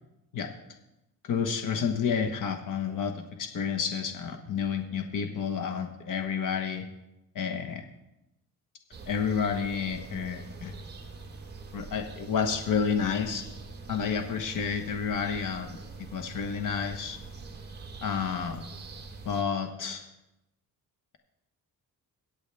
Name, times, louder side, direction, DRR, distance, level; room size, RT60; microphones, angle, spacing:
voice 1, 1.2-6.9 7.3-7.8 9.1-10.7 11.7-13.4 13.9-17.2 18.0-18.6 19.2-20.0, left 6 dB, 60° left, 5 dB, 1.2 m, -30 dB
sound 1, 8.9-19.4, right 3 dB, 30° right, 1.3 m, -44 dB
23.0 x 8.2 x 3.4 m, 0.92 s
cardioid pair, 160°, 35 cm